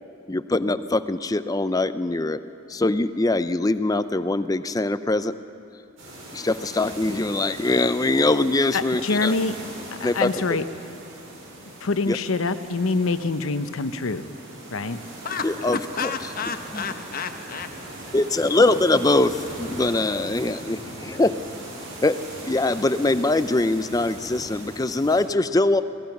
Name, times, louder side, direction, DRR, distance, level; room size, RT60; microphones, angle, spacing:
voice 1, 0.3-2.4 2.7-5.3 6.3-9.3 10.0-10.3 12.1-12.2 15.4-15.8 18.1-21.4 22.0-22.2 22.5-25.8, left 2 dB, 20° left, 13 dB, 0.5 m, -22 dB
sound 1, 6.0-25.2, right 1 dB, 75° right, 6.6 m, -40 dB
voice 2, 8.7-9.6 10.0-10.6 11.8-14.3 14.7-15.0, left 3 dB, 85° left, 11 dB, 0.8 m, -25 dB
voice 3, 15.2-17.7, left 5 dB, 45° left, 7 dB, 1.1 m, -31 dB
25.5 x 17.0 x 6.0 m, 2.7 s
head